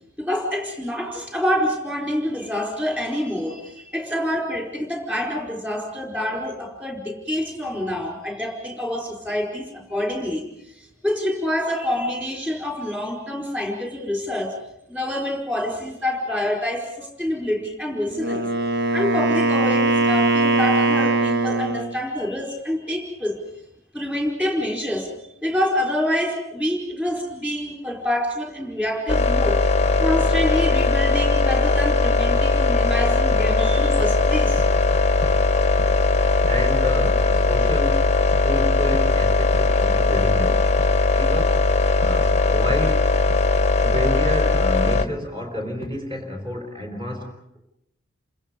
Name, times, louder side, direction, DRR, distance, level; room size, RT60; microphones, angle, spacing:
voice 1, 0.2-10.5 11.0-14.6 14.9-18.5 18.9-23.4 23.9-25.1 25.4-29.6 30.0-34.7, left 1 dB, 5° right, 1 dB, 4.8 m, -26 dB
Wind instrument woodwind instrument, 18.1-22.0, right 3 dB, 50° right, 1.5 m, -21 dB
sound 1, 29.1-45.1, left 3 dB, 30° left, 0.9 m, -19 dB
sound 2, 33.3-33.6 34.0-34.2 34.6-34.8 35.2-35.5 35.8-36.0 36.4-36.7 37.0-37.3 37.7-37.9 38.3-38.5 38.9-39.2 39.5-39.8 40.2-40.4 40.8-41.0 41.4-41.7 42.0-42.2 42.7-42.9 43.3-43.5 43.9-44.2 44.5-44.8 45.2-45.5 45.8-45.9, right 1 dB, 65° right, 5.7 m, -39 dB
voice 2, 36.5-38.1 38.4-40.6 41.1-41.6 42.0-43.1 43.8-47.6, equal, 25° right, 3 dB, 4.4 m, -30 dB
29.5 x 26.0 x 5.4 m, 0.80 s
head